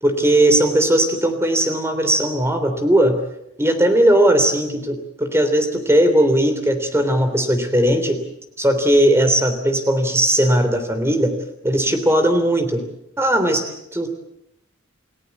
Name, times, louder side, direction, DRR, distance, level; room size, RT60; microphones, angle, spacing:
voice 1, 0.0-3.2 3.6-8.2 8.6-11.3 11.6-12.8 13.2-14.1, right 1 dB, 10° right, 7 dB, 3.3 m, -18 dB
29.0 x 17.0 x 8.2 m, 0.80 s
head